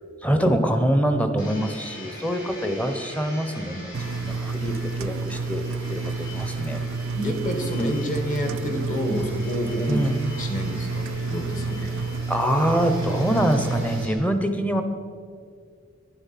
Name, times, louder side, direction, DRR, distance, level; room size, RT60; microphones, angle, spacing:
voice 1, 0.2-5.6 5.9-6.8 9.9-10.2 11.8-11.9 12.3-14.8, equal, 5° left, 7 dB, 0.8 m, -24 dB
Domestic sounds home sounds, 1.4-14.1, left 1 dB, 80° left, 3.9 m, -41 dB
Engine, 3.9-14.1, right 4 dB, 75° right, 0.4 m, -30 dB
voice 2, 7.1-10.1 10.4-11.9, equal, 40° left, 5 dB, 1.6 m, -28 dB
12.0 x 10.5 x 5.8 m, 2.2 s
head